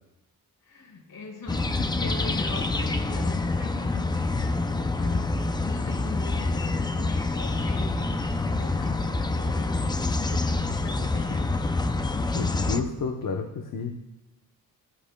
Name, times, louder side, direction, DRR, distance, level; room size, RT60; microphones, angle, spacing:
voice 1, 0.6-11.6 12.1-12.4, left 3 dB, 80° left, -3 dB, 4.3 m, -40 dB
sound 1, 1.5-12.8, left 3 dB, 15° left, 0.4 m, -27 dB
voice 2, 1.8-2.1 4.3-4.5 12.3-14.0, left 4 dB, 65° left, 3 dB, 0.9 m, -31 dB
18.0 x 14.0 x 2.2 m, 0.92 s
wide cardioid pair, 175°, 35 cm